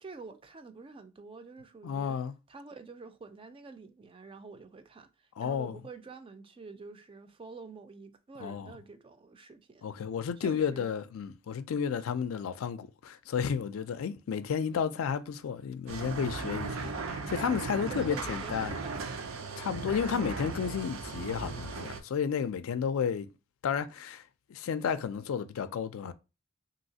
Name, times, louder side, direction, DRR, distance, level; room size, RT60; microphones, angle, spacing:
voice 1, 0.0-2.2 2.5-9.8 10.4-10.9 17.9-19.2, right 4 dB, 25° right, 0.3 m, -47 dB
voice 2, 1.8-2.3 5.4-5.8 8.4-8.7 9.8-18.8 19.6-23.3 23.6-24.2 24.5-26.1, left 7 dB, 85° left, 0.4 m, -32 dB
sound 1, 15.9-22.0, right 4 dB, 85° right, 0.5 m, -37 dB
3.1 x 2.8 x 2.7 m
head